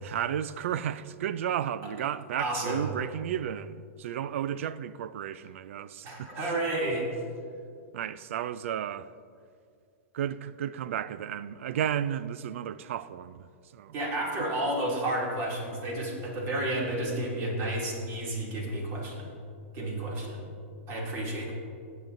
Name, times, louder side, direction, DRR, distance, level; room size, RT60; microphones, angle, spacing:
voice 1, 0.0-6.3 7.9-9.1 10.1-14.0 14.4-14.5, right 10 dB, 75° right, 0.4 m, -33 dB
voice 2, 2.4-2.9 6.0-7.1 13.9-19.3 19.7-20.4 20.9-21.5, right 1 dB, 35° right, 2.6 m, -31 dB
15.0 x 9.2 x 2.6 m
hypercardioid pair, 140°, 7 cm